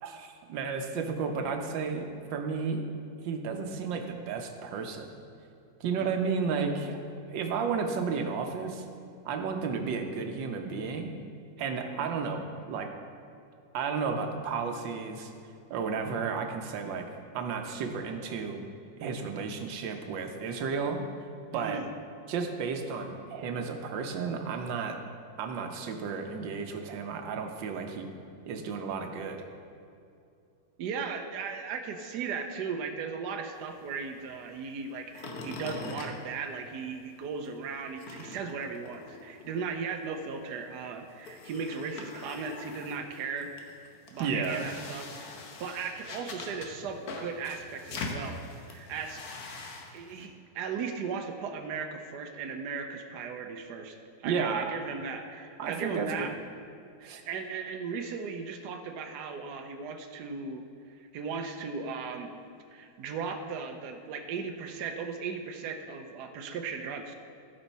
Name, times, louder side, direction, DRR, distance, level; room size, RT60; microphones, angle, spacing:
voice 1, 0.0-2.9 3.2-5.1 5.8-7.0 7.3-8.8 9.2-11.1 11.6-12.9 13.7-15.3 15.7-17.1 17.3-18.6 19.0-21.0 21.5-21.8 22.3-25.0 25.4-28.1 28.4-29.4 44.2-44.7 54.2-54.7 55.6-56.3 57.0-57.2, right 5 dB, 85° right, 4 dB, 1.5 m, -32 dB
voice 2, 21.5-21.9 30.8-43.5 43.8-45.3 45.6-49.6 49.9-56.3 57.0-60.6 60.9-62.3 62.7-67.2, right 5 dB, 70° right, 5 dB, 1.2 m, -37 dB
sound 1, 33.5-37.1 37.4-50.3, left 3 dB, 60° left, 1.3 m, -43 dB
15.0 x 5.4 x 4.1 m, 2.5 s
omnidirectional pair, 2.0 m